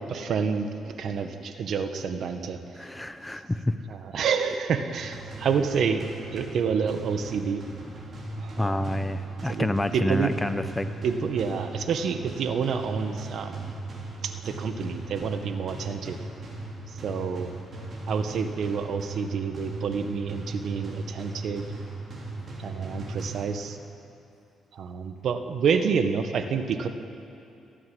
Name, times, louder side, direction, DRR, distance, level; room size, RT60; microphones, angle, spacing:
voice 1, 0.1-2.9 3.9-7.6 8.4-9.0 9.5-10.3 11.0-13.7 14.2-16.2 16.9-17.5 18.1-21.6 22.6-23.8 24.7-26.9, right 6 dB, 65° right, 7 dB, 1.7 m, -28 dB
voice 2, 2.8-3.8 8.6-10.9, left 1 dB, 10° left, 10 dB, 1.0 m, -28 dB
sound 1, 4.9-23.9, right 2 dB, 40° right, 6.0 m, -38 dB
29.5 x 11.0 x 9.5 m, 2.6 s
cardioid pair, 90°, 0 cm